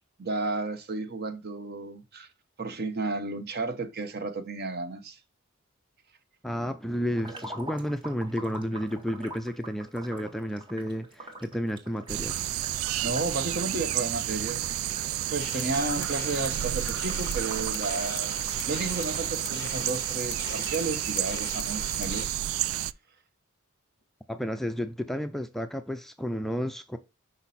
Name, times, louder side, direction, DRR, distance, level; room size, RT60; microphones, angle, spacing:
voice 1, 0.2-2.3 2.6-5.2 13.0-14.7 15.3-18.4 18.7-22.4, right 3 dB, 50° right, 1.0 m, -32 dB
voice 2, 6.4-12.4 24.3-27.0, equal, ahead, 0.4 m, -32 dB
sound 1, 7.2-19.9 20.3-20.4 20.6-20.7, right 1 dB, 25° right, 1.6 m, -46 dB
sound 2, 12.1-22.9, right 13 dB, 80° right, 0.3 m, -31 dB
sound 3, 15.4-22.2, left 10 dB, 55° left, 0.5 m, -42 dB
6.0 x 5.2 x 4.2 m
head